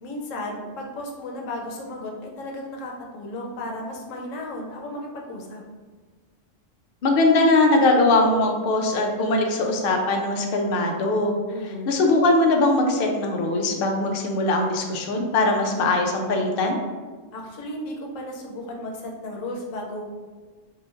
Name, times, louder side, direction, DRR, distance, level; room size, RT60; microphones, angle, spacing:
voice 1, 0.0-5.6 11.5-12.0 17.3-20.0, left 1 dB, 90° left, 0 dB, 1.0 m, -34 dB
voice 2, 7.0-11.4 11.6-16.8, left 2 dB, 60° left, 2 dB, 0.6 m, -21 dB
4.5 x 2.5 x 2.4 m, 1.4 s
omnidirectional pair, 1.3 m